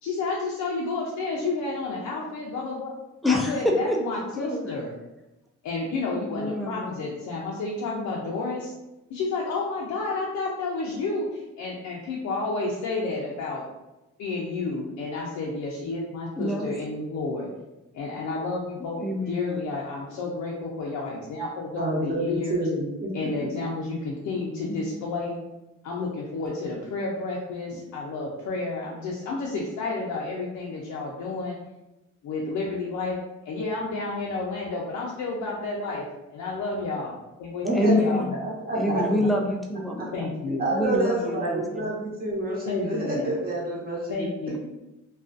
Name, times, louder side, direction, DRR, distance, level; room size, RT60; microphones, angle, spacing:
voice 1, 0.0-2.9 3.2-4.9 5.6-8.7 9.1-13.6 14.2-17.5 17.9-22.6 23.1-25.4 25.8-31.6 32.2-33.2 33.5-36.0 36.3-37.1 37.4-38.4 38.9-39.3 40.1-40.7 42.7-43.3 44.1-44.6, left 3 dB, 75° left, -3 dB, 0.5 m, -31 dB
voice 2, 3.2-4.7 6.3-7.0 16.4-16.7 18.8-19.6 37.7-38.3 38.7-40.3 40.7-41.8, left 1 dB, ahead, 0 dB, 0.4 m, -26 dB
voice 3, 21.8-23.5 24.7-24.8 37.6-39.0 40.0-40.1 40.6-44.3, right 1 dB, 30° right, -4 dB, 1.0 m, -28 dB
2.4 x 2.3 x 2.4 m, 0.97 s
cardioid pair, 90°, 30 cm